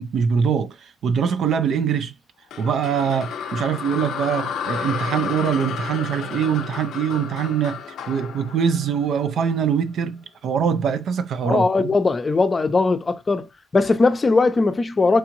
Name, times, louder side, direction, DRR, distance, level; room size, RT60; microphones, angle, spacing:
voice 1, 0.0-2.1 2.6-7.8 8.1-11.9, right 7 dB, 65° right, 0.4 m, -23 dB
sound 1, 2.5-9.7, left 7 dB, 80° left, 0.5 m, -32 dB
voice 2, 11.4-13.5 13.7-15.2, left 3 dB, 30° left, 0.5 m, -19 dB
4.6 x 2.5 x 2.9 m
cardioid pair, 90°, 0 cm